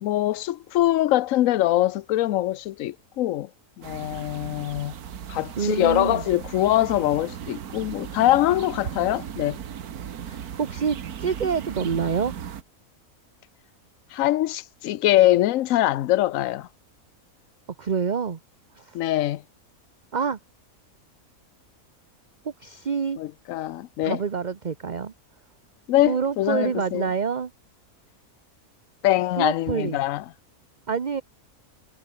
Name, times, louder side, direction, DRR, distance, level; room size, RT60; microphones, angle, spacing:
voice 1, 0.0-3.5 3.8-4.9 5.3-9.6 14.1-16.7 18.9-19.4 23.2-24.2 25.9-27.1 29.0-30.2, left 14 dB, 70° left, 1.0 m, -23 dB
sound 1, 3.8-12.6, right 9 dB, 85° right, 1.7 m, -37 dB
voice 2, 5.6-6.2 10.2-12.3 17.8-18.4 18.8-19.0 20.1-20.4 22.4-23.2 24.0-25.1 26.0-27.5 29.4-30.0 30.9-31.2, right 6 dB, 35° right, 0.9 m, -27 dB
omnidirectional pair, 1.5 m